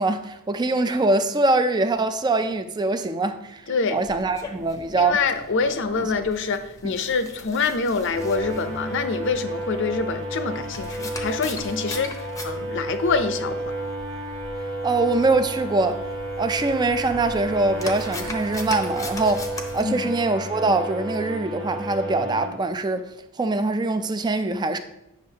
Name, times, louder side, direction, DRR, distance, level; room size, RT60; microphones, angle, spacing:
voice 1, 0.0-5.2 6.0-6.1 6.8-6.9 14.8-16.0 16.4-23.0 23.4-24.8, right 3 dB, 20° right, 0.3 m, -23 dB
voice 2, 3.7-4.0 4.9-13.7 19.8-20.2, left 4 dB, 55° left, 0.6 m, -26 dB
sound 1, 4.0-19.8, left 2 dB, 15° left, 0.6 m, -41 dB
sound 2, 8.1-22.5, right 1 dB, 60° right, 1.4 m, -32 dB
8.8 x 6.2 x 2.8 m
head